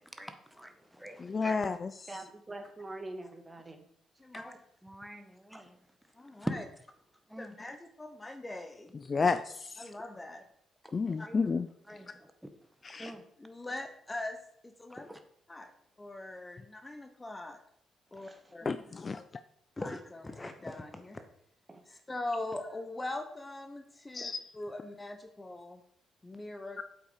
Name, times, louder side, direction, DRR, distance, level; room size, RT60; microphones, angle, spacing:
voice 1, 0.0-1.7 4.3-5.8 6.4-6.5 7.3-7.5 11.2-11.4 11.9-12.3 13.0-13.2 14.9-15.2 18.6-18.8, equal, 5° right, 7 dB, 1.4 m, -43 dB
voice 2, 1.2-1.9 4.3-4.4 9.1-9.9 10.9-11.7 12.8-13.1 18.6-19.2 24.1-24.4 26.8-26.9, left 4 dB, 35° left, 11 dB, 0.5 m, -31 dB
voice 3, 2.1-3.9 18.2-18.5 21.7-21.9, right 2 dB, 20° right, 6 dB, 1.7 m, -44 dB
voice 4, 4.2-4.5 6.1-6.6 7.4-8.9 9.8-10.4 11.2-11.3 13.4-15.1 15.5-15.7 16.0-17.6 18.1-18.7 19.8-21.2 21.9-25.8 26.2-26.8, left 2 dB, 20° left, 7 dB, 1.0 m, -41 dB
8.3 x 8.0 x 5.1 m, 0.68 s
cardioid pair, 90°, 0 cm